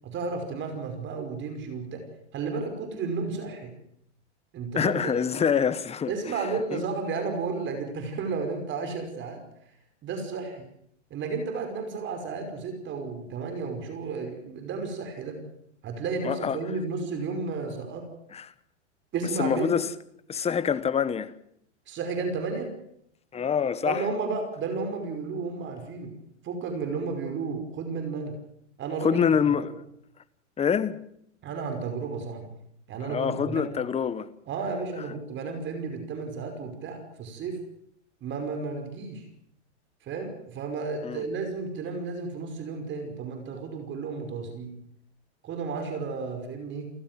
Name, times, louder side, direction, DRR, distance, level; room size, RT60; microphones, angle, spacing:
voice 1, 0.0-2.0 2.3-3.7 4.5-5.1 6.1-9.4 10.0-10.7 11.1-15.4 15.8-18.1 19.1-19.8 21.9-22.7 23.8-26.2 26.4-28.4 28.8-29.7 31.4-32.5 32.9-33.8 34.5-37.6 38.2-39.3 40.0-44.7 45.4-46.9, right 4 dB, 30° right, 5.4 m, -32 dB
voice 2, 4.7-6.1 6.7-6.8 16.2-16.6 18.3-18.4 19.4-19.9 20.3-21.3 23.3-24.0 29.0-29.7 30.6-31.0 33.0-34.3 41.0-41.2, left 7 dB, 15° left, 1.2 m, -25 dB
29.5 x 15.5 x 7.7 m
hypercardioid pair, 125°, 36 cm